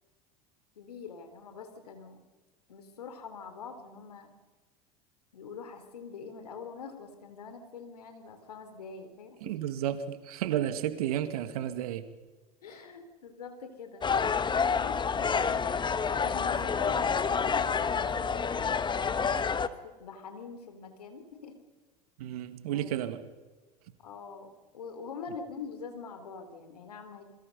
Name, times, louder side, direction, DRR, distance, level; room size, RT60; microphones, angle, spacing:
voice 1, 0.8-2.2 2.7-4.3 5.3-9.5 12.6-14.1 14.7-15.7 16.1-19.3 19.6-21.6 22.7-22.9 24.0-27.2, left 5 dB, 85° left, 3.6 m, -44 dB
voice 2, 9.4-12.1 22.2-23.2, right 11 dB, 75° right, 2.1 m, -32 dB
sound 1, 14.0-19.7, left 6 dB, 25° left, 1.3 m, -28 dB
28.0 x 22.5 x 5.4 m
hypercardioid pair, 80°, 19 cm